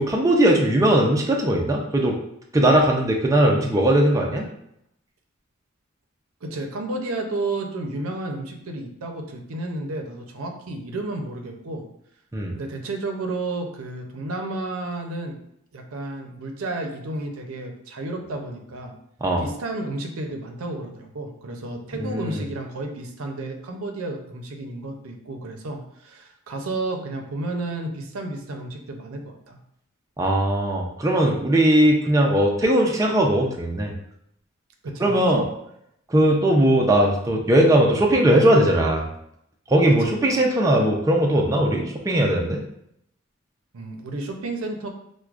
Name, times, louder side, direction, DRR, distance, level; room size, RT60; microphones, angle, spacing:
voice 1, 0.0-2.2 2.5-4.4 12.3-12.5 19.2-19.4 22.0-22.4 30.2-33.9 35.0-35.5 36.1-39.1 39.7-42.6, right 1 dB, 15° right, 0 dB, 0.4 m, -19 dB
voice 2, 6.4-11.8 12.5-15.3 15.7-18.9 19.4-29.6 34.8-35.1 40.0-40.1 43.7-44.9, right 2 dB, 80° right, 3 dB, 0.5 m, -32 dB
4.5 x 2.1 x 2.4 m, 0.75 s
head